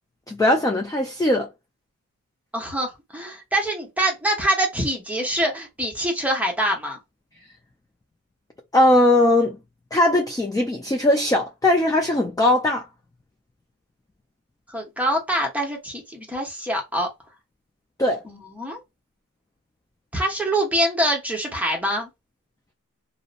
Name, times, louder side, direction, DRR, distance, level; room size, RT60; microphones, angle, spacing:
voice 1, 0.3-1.5 8.7-9.6 9.9-12.8 18.0-18.2, left 1 dB, 10° left, 0.3 m, -19 dB
voice 2, 2.5-7.0 14.7-17.1 18.2-18.8 20.1-22.1, right 1 dB, 5° right, 0.9 m, -25 dB
2.7 x 2.0 x 2.5 m
wide cardioid pair, 120°, 32 cm